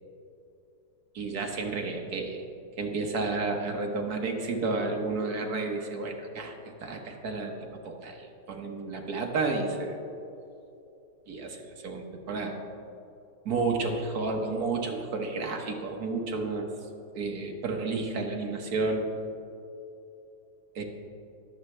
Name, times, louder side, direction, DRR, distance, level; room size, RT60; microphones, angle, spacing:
voice 1, 1.1-2.4 2.8-6.5 6.8-10.0 11.3-12.6 13.4-16.7 17.1-19.1 20.7-20.8, right 3 dB, 60° right, 2 dB, 1.6 m, -31 dB
20.5 x 7.3 x 3.3 m, 2.8 s
omnidirectional pair, 1.9 m